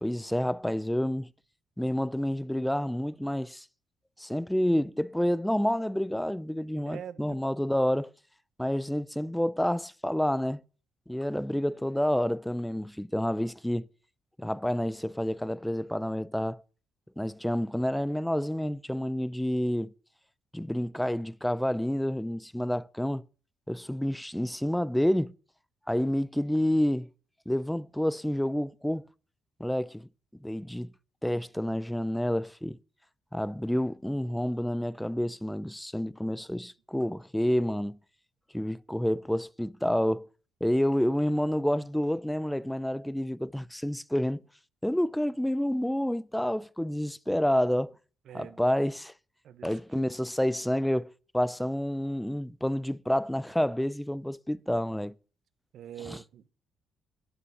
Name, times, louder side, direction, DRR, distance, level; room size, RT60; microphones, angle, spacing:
voice 1, 0.0-1.3 1.8-3.6 4.2-8.1 8.6-10.6 11.1-13.9 14.4-16.6 17.2-19.9 20.5-23.2 23.7-25.3 25.9-27.1 27.5-29.0 29.6-30.1 30.4-30.9 31.2-32.8 33.3-38.0 38.5-40.3 40.6-44.4 44.8-47.9 48.3-49.1 49.6-55.1 56.1-56.2, equal, 5° left, 0.5 m, -29 dB
voice 2, 6.8-7.4 48.3-48.6 49.4-50.0 55.7-56.5, right 9 dB, 70° right, 1.1 m, -44 dB
11.0 x 8.9 x 7.0 m
cardioid pair, 90°, 0 cm